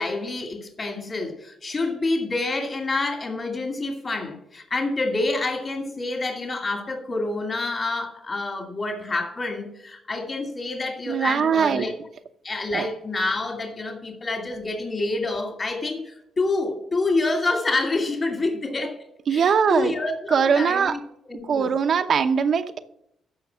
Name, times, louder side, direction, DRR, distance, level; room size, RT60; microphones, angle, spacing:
voice 1, 0.0-12.0 12.4-19.0 19.3-21.0 21.2-21.7, left 2 dB, 40° left, 2.2 m, -27 dB
voice 2, 11.1-11.9 12.7-12.9 19.3-19.9 20.3-21.0 21.4-22.8, right 6 dB, 55° right, 0.9 m, -21 dB
13.5 x 5.3 x 7.4 m
cardioid pair, 90°, 0 cm